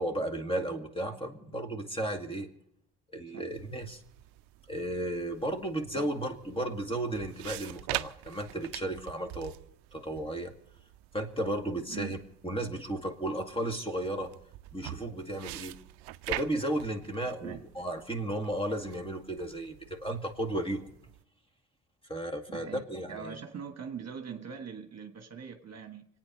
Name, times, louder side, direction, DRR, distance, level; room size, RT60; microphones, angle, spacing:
voice 1, 0.0-2.5 3.1-4.0 4.7-9.5 9.9-10.5 11.1-12.2 12.4-14.3 14.7-15.8 16.3-20.9 22.1-23.4, right 1 dB, 10° left, 2.1 m, -34 dB
sound 1, 3.5-21.2, right 17 dB, 65° right, 0.7 m, -45 dB
voice 2, 22.5-26.1, right 7 dB, 35° right, 1.5 m, -42 dB
25.5 x 9.4 x 5.3 m
hypercardioid pair, 70°, 44 cm